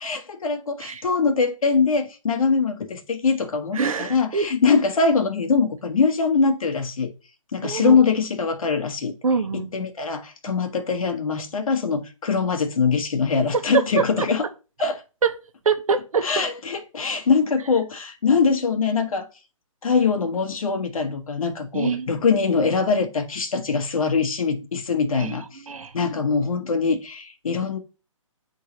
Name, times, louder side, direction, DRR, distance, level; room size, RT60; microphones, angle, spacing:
voice 1, 0.0-7.1 7.5-9.1 9.5-14.4 14.8-15.0 16.2-19.3 19.8-25.6 25.9-27.8, left 5 dB, 80° left, 1.4 m, -22 dB
voice 2, 3.7-4.5 7.6-8.0 9.2-9.7 10.5-10.6 13.7-14.3 15.6-16.3 21.7-22.1 25.2-25.4 25.7-25.9, right 5 dB, 85° right, 1.1 m, -24 dB
9.1 x 3.7 x 2.9 m
hypercardioid pair, 160°, 17 cm